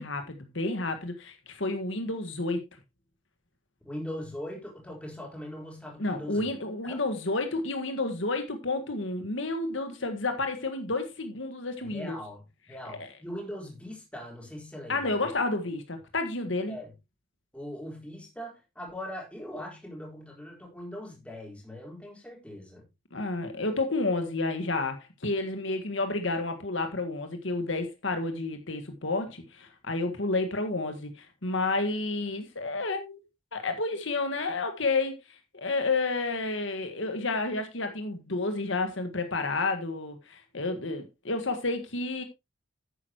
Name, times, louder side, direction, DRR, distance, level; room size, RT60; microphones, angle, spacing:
voice 1, 0.0-2.6 6.0-12.2 13.0-13.1 14.9-16.8 23.1-33.2 33.5-35.2 35.5-42.2, left 3 dB, 70° left, 1.7 m, -30 dB
voice 2, 3.8-6.5 6.8-7.0 11.8-15.4 16.7-16.9 17.5-22.9, left 1 dB, 5° left, 4.1 m, -41 dB
11.0 x 9.4 x 3.0 m
head